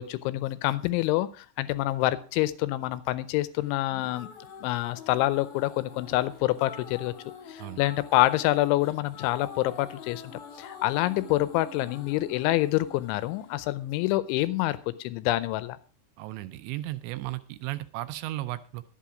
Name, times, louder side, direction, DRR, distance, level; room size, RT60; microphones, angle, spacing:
voice 1, 0.0-4.3 4.6-7.1 7.5-10.2 10.6-15.8, left 16 dB, 85° left, 15 dB, 3.0 m, -27 dB
sound 1, 3.7-14.7, left 5 dB, 55° left, 2.8 m, -46 dB
voice 2, 16.2-18.8, right 16 dB, 80° right, 12 dB, 2.8 m, -35 dB
11.5 x 8.2 x 5.0 m, 0.39 s
omnidirectional pair, 5.4 m